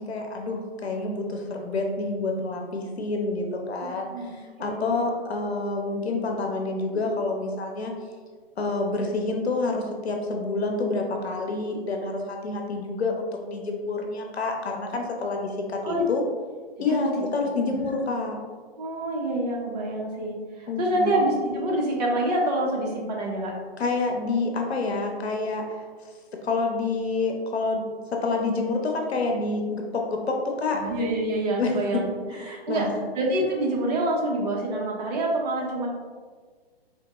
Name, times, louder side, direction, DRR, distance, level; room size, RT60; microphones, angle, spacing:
voice 1, 0.0-7.9 8.6-16.2 16.8-18.4 20.7-21.2 23.8-25.8 26.4-27.8 28.1-30.8 31.6-31.8 32.4-32.9, left 3 dB, 85° left, 2 dB, 0.8 m, -28 dB
voice 2, 3.8-4.3 4.6-5.0 15.8-16.0 16.9-17.1 17.6-17.9 18.8-20.4 20.8-23.5 30.7-32.1 32.5-32.9 33.1-35.9, right 1 dB, 40° right, -1 dB, 0.8 m, -26 dB
3.5 x 2.1 x 2.9 m, 1.5 s
hypercardioid pair, 135°, 31 cm